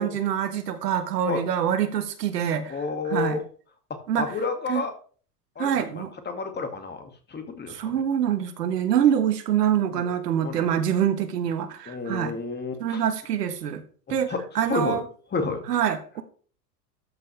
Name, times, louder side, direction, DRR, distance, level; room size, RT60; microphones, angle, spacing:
voice 1, 0.0-2.8 3.1-3.4 4.1-4.3 4.7-4.8 5.6-6.1 7.7-12.3 12.8-13.8 14.1-15.0 15.7-16.2, right 9 dB, 80° right, 10 dB, 1.5 m, -25 dB
voice 2, 2.7-3.4 3.9-4.9 5.6-7.0 7.3-8.0 9.9-10.1 10.4-10.7 11.9-13.0 14.1-14.4 14.7-15.0 15.3-15.7, left 4 dB, 20° left, 6 dB, 2.1 m, -30 dB
13.5 x 5.6 x 3.3 m, 0.43 s
hypercardioid pair, 95°, 47 cm